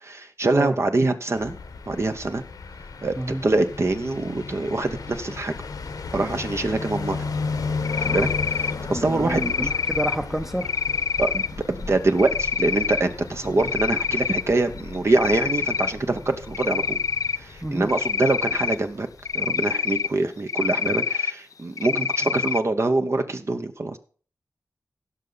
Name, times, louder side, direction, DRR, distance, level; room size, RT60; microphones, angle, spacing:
voice 1, 0.0-1.6 1.9-2.4 3.0-3.1 3.4-5.6 6.1-7.3 8.0-9.7 11.2-17.0 17.4-19.1 19.3-24.0, right 2 dB, 45° right, 1.0 m, -24 dB
sound 1, 1.4-19.3, left 4 dB, 85° left, 1.1 m, -35 dB
Cricket, 7.8-8.7 9.3-10.2 10.6-11.5 12.2-13.0 13.4-14.4 14.8-15.9 16.5-17.4 17.9-18.8 19.3-20.1 20.5-21.3 21.8-22.6, left 6 dB, 65° left, 0.4 m, -26 dB
voice 2, 8.9-10.7 13.4-13.7 17.6-17.9 21.9-22.3, right 1 dB, 5° right, 0.7 m, -29 dB
16.0 x 5.7 x 4.0 m
cardioid pair, 55°, 6 cm